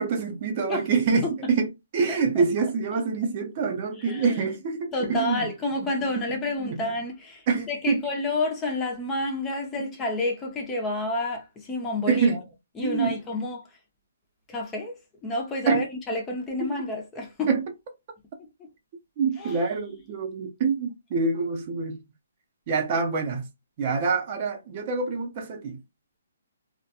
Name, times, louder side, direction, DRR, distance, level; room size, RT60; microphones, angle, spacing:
voice 1, 0.0-1.7 1.9-5.5 6.2-6.3 6.6-6.8 7.5-8.0 12.1-12.4 12.8-13.1 15.7-15.8 16.6-16.7 17.5-17.6 19.2-22.0 22.7-23.5 23.8-25.8, right 5 dB, 35° right, 0.6 m, -26 dB
voice 2, 4.0-4.4 4.9-12.4 12.8-13.7 14.5-17.5 18.4-18.5 19.4-19.7, left 2 dB, 15° left, 0.5 m, -30 dB
2.2 x 2.1 x 2.8 m
hypercardioid pair, 160°, 0 cm